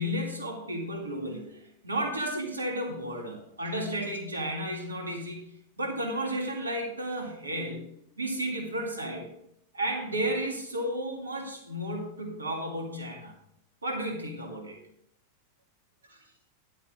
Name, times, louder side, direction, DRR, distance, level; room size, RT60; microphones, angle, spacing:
voice 1, 0.0-5.5 5.8-7.9 8.2-9.3 9.7-13.3 13.8-14.8 16.1-16.2, equal, 80° right, 2 dB, 2.3 m, -33 dB
10.5 x 8.9 x 3.7 m, 0.74 s
figure-of-eight pair, 90°, 0 cm